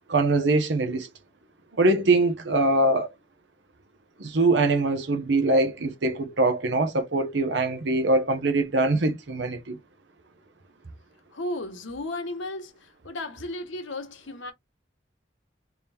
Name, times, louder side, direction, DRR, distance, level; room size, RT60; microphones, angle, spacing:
voice 1, 0.1-1.1 1.8-3.1 4.2-9.8, right 2 dB, 70° right, 0.8 m, -23 dB
voice 2, 11.3-14.5, left 1 dB, 85° left, 1.0 m, -34 dB
3.6 x 2.9 x 3.4 m
head